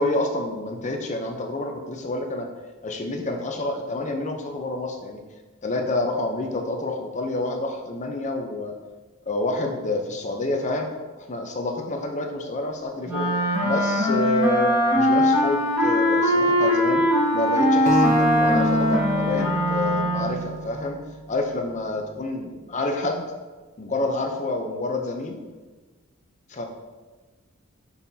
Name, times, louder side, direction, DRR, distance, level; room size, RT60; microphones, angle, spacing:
voice 1, 0.0-2.5 2.8-5.2 5.6-8.7 9.3-13.3 13.6-17.0 17.3-21.0 21.3-23.2 23.8-25.4 26.5-26.6, left 2 dB, 35° left, 3 dB, 0.7 m, -28 dB
Wind instrument woodwind instrument, 13.1-20.5, left 1 dB, 10° right, 1.5 m, -21 dB
Acoustic guitar, 17.9-21.1, right 1 dB, 35° right, 0.5 m, -26 dB
6.2 x 5.6 x 2.8 m, 1.3 s
head